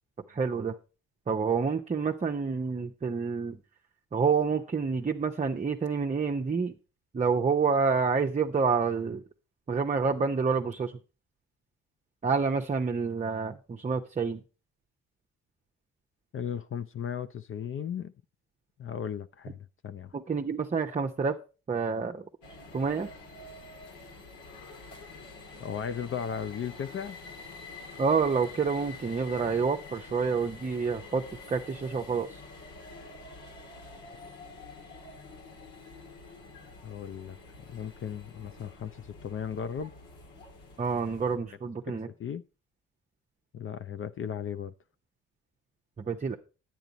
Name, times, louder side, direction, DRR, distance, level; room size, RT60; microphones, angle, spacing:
voice 1, 0.3-0.7 1.3-3.6 4.1-6.7 7.1-9.2 9.7-10.9 12.2-14.4 20.1-21.4 21.7-22.2 22.7-23.1 28.0-32.4 40.8-42.1 46.0-46.4, right 5 dB, 25° right, 0.8 m, -28 dB
voice 2, 16.3-18.1 18.8-20.1 25.6-27.2 36.8-37.4 37.7-39.9 42.2-42.4 43.5-44.7, left 8 dB, 45° left, 0.5 m, -36 dB
sound 1, 22.4-41.4, left 3 dB, 90° left, 2.5 m, -47 dB
9.1 x 9.1 x 4.0 m
cardioid pair, 90°, 30 cm